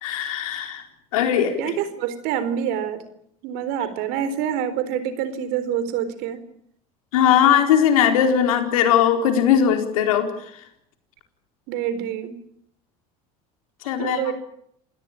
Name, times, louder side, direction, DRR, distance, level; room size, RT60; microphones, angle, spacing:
voice 1, 0.0-0.8 1.1-1.6 7.1-10.3 13.8-14.3, left 9 dB, 90° left, 6 dB, 4.2 m, -19 dB
voice 2, 1.6-3.1 3.4-6.4 11.7-12.4 14.0-14.3, right 9 dB, 70° right, 13 dB, 4.2 m, -26 dB
28.0 x 17.0 x 8.9 m, 0.70 s
supercardioid pair, 85°, 17 cm